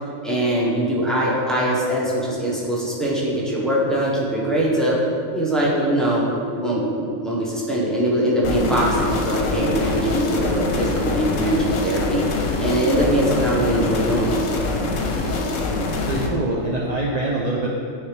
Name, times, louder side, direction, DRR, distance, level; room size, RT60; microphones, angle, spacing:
voice 1, 0.2-5.0 5.3-6.3 6.5-12.3 12.6-14.3, right 1 dB, ahead, -6 dB, 0.8 m, -22 dB
sound 1, 8.4-16.3, left 3 dB, 75° left, 1.1 m, -24 dB
voice 2, 16.1-17.7, right 2 dB, 60° right, -3 dB, 0.4 m, -24 dB
9.4 x 3.3 x 3.3 m, 2.4 s
omnidirectional pair, 1.3 m